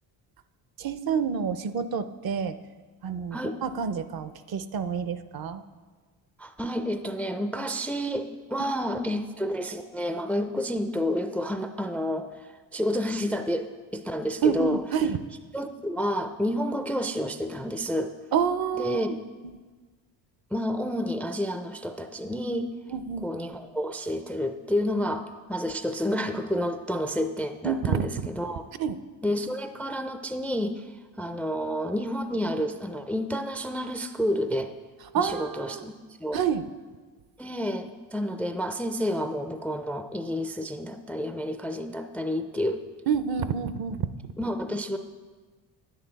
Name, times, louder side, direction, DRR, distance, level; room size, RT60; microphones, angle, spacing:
voice 1, 0.8-2.6 3.0-5.6 14.4-15.2 18.3-19.1 19.4-19.5 22.9-23.3 27.6-28.1 28.8-29.0 35.1-35.9 36.3-36.6 43.1-44.1, right 7 dB, 50° right, 12 dB, 0.6 m, -28 dB
voice 2, 6.4-14.8 15.5-18.1 18.7-19.1 20.5-22.7 23.2-28.6 29.2-34.7 35.1-35.9 36.2-36.4 37.4-42.8 44.4-45.0, equal, 5° left, 8 dB, 0.4 m, -30 dB
9.7 x 8.9 x 4.0 m, 1.4 s
supercardioid pair, 80°, 47 cm